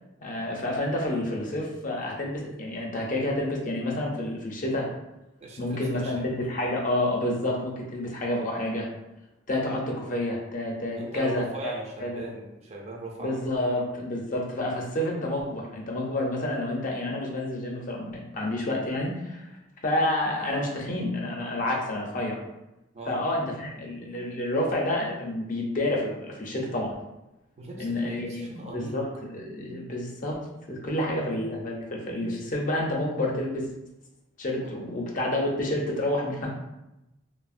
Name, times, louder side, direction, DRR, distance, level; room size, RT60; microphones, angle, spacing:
voice 1, 0.2-4.9 5.6-8.9 9.5-11.7 12.0-12.2 13.2-19.5 19.8-22.4 23.1-26.9 27.8-30.3 30.7-33.7 34.4-36.5, left 1 dB, 45° left, -1 dB, 0.5 m, -29 dB
voice 2, 5.4-6.2 11.0-13.4 22.9-23.2 27.6-29.0 34.6-34.7, right 2 dB, 35° right, -1 dB, 0.4 m, -39 dB
3.2 x 2.0 x 2.4 m, 0.94 s
head